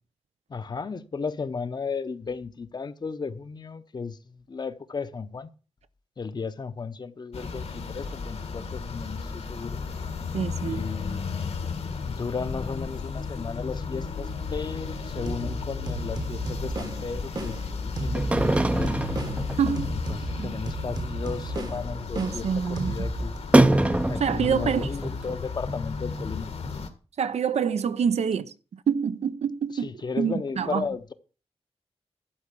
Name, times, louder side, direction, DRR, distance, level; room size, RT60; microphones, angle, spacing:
voice 1, 0.5-5.5 6.2-9.8 10.6-11.2 12.1-19.0 19.9-23.3 24.1-26.5 29.8-31.1, left 5 dB, 40° left, 0.8 m, -35 dB
sound 1, 7.3-26.9, left 5 dB, 70° left, 1.5 m, -34 dB
voice 2, 10.3-10.8 19.6-20.0 20.4-20.6 22.2-23.1 24.2-24.9 27.2-29.9 30.2-30.9, right 7 dB, 85° right, 0.7 m, -26 dB
sound 2, 15.2-23.4, right 2 dB, 40° right, 1.0 m, -34 dB
sound 3, 18.1-20.2 20.5-20.6 20.9-21.0 21.2-21.5 21.9-22.0 23.5-25.4 25.7-25.8 26.2-26.3 26.6-26.7, right 1 dB, 10° right, 0.5 m, -23 dB
12.0 x 4.5 x 8.2 m
wide cardioid pair, 145°, 11 cm